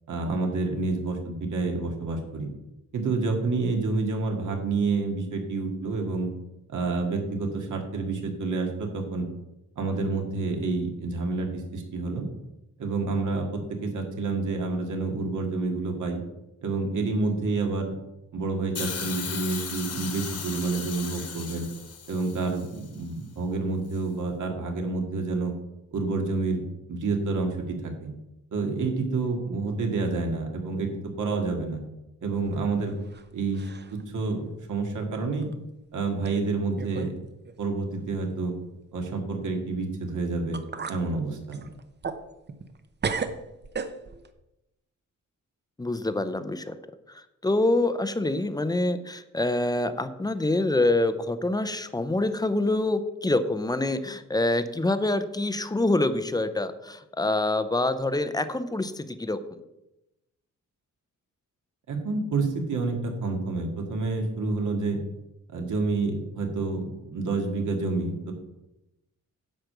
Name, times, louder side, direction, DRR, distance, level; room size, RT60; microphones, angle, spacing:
voice 1, 0.1-2.5 2.9-6.3 6.7-9.3 9.8-12.3 12.8-16.2 16.6-17.9 18.3-21.7 22.1-25.5 25.9-26.6 26.9-28.1 28.5-30.9 31.2-31.8 32.2-32.9 33.3-35.5 35.9-37.1 37.6-38.5 38.9-40.6 40.9-41.6 61.9-65.0 65.5-68.3, right 3 dB, 75° right, 2 dB, 2.2 m, -28 dB
Hiss, 18.7-22.9 23.9-24.0, left 6 dB, 50° left, 1.4 m, -36 dB
sound 1, 32.4-33.3 33.5-34.0 34.5-34.6 35.4-35.5 36.3-36.4 36.8-37.2 37.4-37.6 40.1-40.2 40.5-41.0 41.5-42.8 43.0-44.3, right 5 dB, 35° right, 0.7 m, -34 dB
voice 2, 45.8-46.8 47.1-59.6, left 2 dB, 15° left, 11 dB, 0.6 m, -26 dB
10.5 x 5.1 x 7.9 m, 0.93 s
wide cardioid pair, 165°, 31 cm